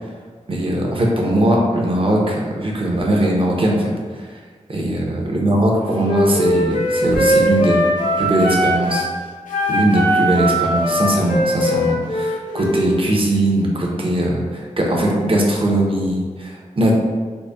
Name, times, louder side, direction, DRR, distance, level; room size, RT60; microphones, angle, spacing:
voice 1, 0.5-3.9 4.2-4.3 4.7-7.8 8.2-9.1 9.7-16.9, right 1 dB, 45° right, -2 dB, 0.7 m, -19 dB
Wind instrument woodwind instrument, 6.0-9.1 9.5-12.9, equal, 85° left, 0.7 m, -20 dB
4.0 x 2.1 x 3.4 m, 1.6 s
wide cardioid pair, 80°, 13 cm